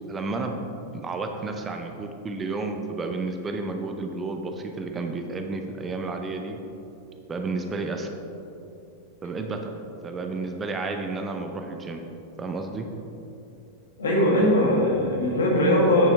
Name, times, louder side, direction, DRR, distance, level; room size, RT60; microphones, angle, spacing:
voice 1, 0.1-0.6 0.9-6.6 7.3-8.1 9.2-12.0 12.4-12.9, right 3 dB, 20° right, 4 dB, 0.6 m, -31 dB
voice 2, 14.0-16.1, left 1 dB, 65° left, -3 dB, 1.7 m, -20 dB
8.8 x 6.8 x 3.3 m, 2.7 s
figure-of-eight pair, 90°, 0 cm